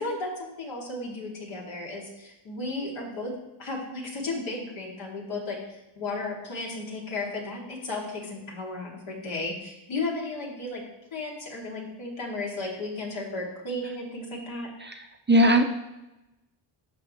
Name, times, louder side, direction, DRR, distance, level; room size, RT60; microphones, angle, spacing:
voice 1, 0.0-10.8 11.1-14.7, left 2 dB, 70° left, -1 dB, 2.7 m, -34 dB
voice 2, 14.8-15.6, equal, 25° right, 5 dB, 0.6 m, -20 dB
11.5 x 6.6 x 3.2 m, 0.96 s
cardioid pair, 120°, 48 cm